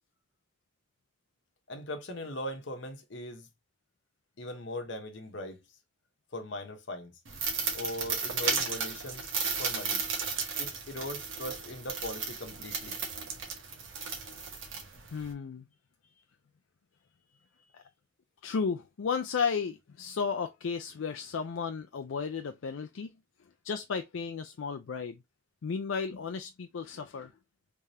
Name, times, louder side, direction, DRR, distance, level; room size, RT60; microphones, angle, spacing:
voice 1, 1.7-3.5 4.4-5.6 6.3-7.1 7.7-9.3 9.6-10.1 10.6-13.0, left 1 dB, 65° left, 1.0 m, -39 dB
sound 1, 7.2-15.3, right 5 dB, 80° right, 1.1 m, -34 dB
voice 2, 15.1-15.7 17.7-17.8 18.4-23.1 23.6-25.2 25.6-27.3, left 5 dB, 85° left, 0.4 m, -34 dB
3.5 x 3.3 x 2.7 m
head